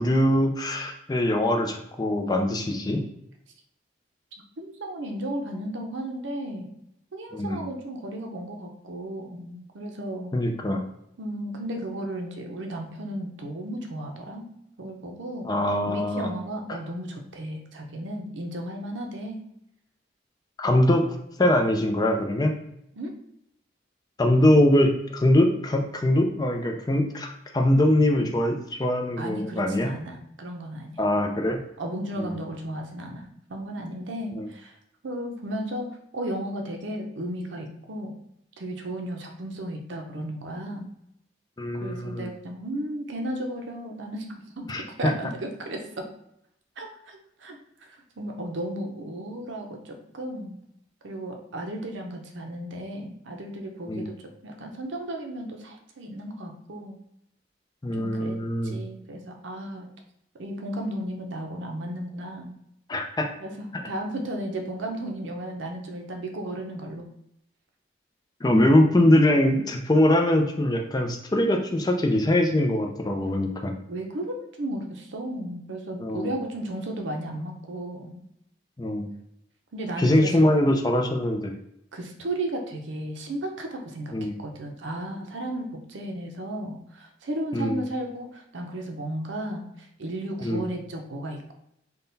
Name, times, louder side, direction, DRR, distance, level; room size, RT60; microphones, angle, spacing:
voice 1, 0.0-3.0 7.3-7.6 10.3-10.8 15.4-16.3 16.7-16.8 20.6-21.1 21.4-22.5 24.2-29.9 31.0-31.6 32.2-32.4 34.4-34.5 41.6-42.3 44.7-44.8 53.9-54.1 57.8-58.7 62.9-63.3 68.4-73.7 76.0-76.3 78.8-79.1 80.0-81.5 84.1-84.3 87.5-87.8 90.4-90.6, left 1 dB, 20° left, 3 dB, 0.4 m, -22 dB
voice 2, 4.6-6.7 7.1-10.3 11.2-14.5 14.8-15.5 15.8-19.4 22.9-23.1 29.2-31.0 31.8-34.8 35.0-38.1 38.6-40.9 41.8-44.7 45.0-46.1 46.8-47.6 47.8-50.6 51.0-54.1 54.4-57.0 57.9-58.4 58.6-59.9 60.4-62.5 63.4-67.1 73.9-78.2 79.7-80.5 81.9-84.1 84.4-91.5, right 1 dB, 80° right, 3 dB, 0.7 m, -34 dB
3.7 x 2.2 x 3.9 m, 0.77 s
head